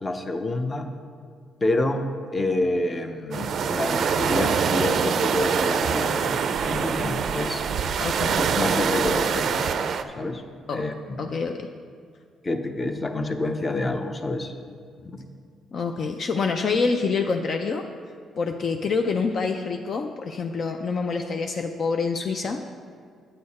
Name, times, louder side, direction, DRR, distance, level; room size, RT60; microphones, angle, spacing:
voice 1, 0.0-0.9 1.6-2.1 2.3-7.6 8.3-9.7 10.2-10.4 10.7-10.9 12.4-14.5 15.0-15.2, left 2 dB, 25° left, 6 dB, 0.7 m, -28 dB
sound 1, 3.3-10.0, right 6 dB, 60° right, 0.4 m, -24 dB
voice 2, 8.0-8.4 10.7-10.8 11.2-11.7 15.7-17.9 18.4-22.6, left 4 dB, 55° left, 5 dB, 0.4 m, -26 dB
8.4 x 6.8 x 4.2 m, 2.2 s
cardioid pair, 90°, 0 cm